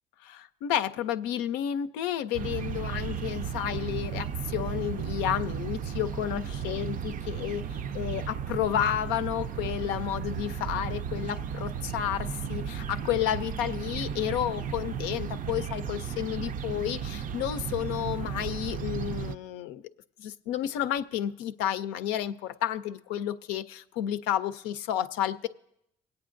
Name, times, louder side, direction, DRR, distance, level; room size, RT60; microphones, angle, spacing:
voice 1, 0.2-7.6 7.9-19.8 20.2-25.5, left 11 dB, 90° left, 9 dB, 0.5 m, -31 dB
sound 1, 2.3-19.4, right 7 dB, 50° right, 0.4 m, -34 dB
23.5 x 8.7 x 2.5 m, 0.78 s
supercardioid pair, 70°, 18 cm